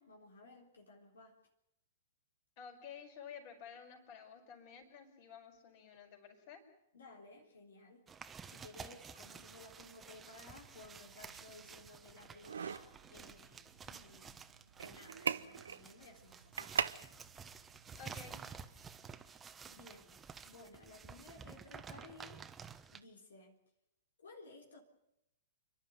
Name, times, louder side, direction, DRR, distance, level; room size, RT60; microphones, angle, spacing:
voice 1, 0.0-1.4 6.9-8.0 8.5-14.4 14.8-16.8 19.7-20.2 20.5-22.5 22.9-23.5 24.2-24.8, left 3 dB, 75° left, 1 dB, 3.8 m, -57 dB
voice 2, 2.6-6.6 18.0-18.4, left 7 dB, 45° left, 5 dB, 5.3 m, -52 dB
sound 1, 8.1-23.0, right 6 dB, 15° right, 1.2 m, -52 dB
sound 2, 10.4-19.2, right 7 dB, 75° right, 0.8 m, -44 dB
28.5 x 12.0 x 9.4 m, 0.82 s
hypercardioid pair, 110°, 0 cm